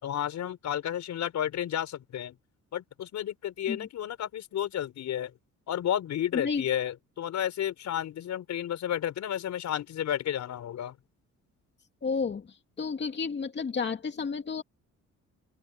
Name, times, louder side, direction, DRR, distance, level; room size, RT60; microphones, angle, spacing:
voice 1, 0.0-2.4 2.7-5.3 5.7-10.9, left 10 dB, 70° left, 5.1 m, -32 dB
voice 2, 6.3-6.6 12.0-14.6, left 5 dB, 35° left, 2.7 m, -31 dB
open air
cardioid pair, 110°, 29 cm